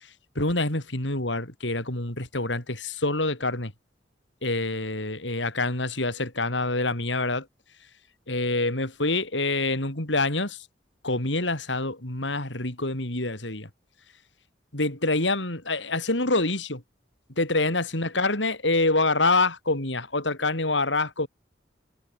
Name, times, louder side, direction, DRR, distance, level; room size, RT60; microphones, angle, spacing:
voice 1, 0.4-3.7 4.4-7.5 8.3-10.6 11.0-13.7 14.7-16.8 17.4-21.3, left 2 dB, 80° left, 5.6 m, -26 dB
head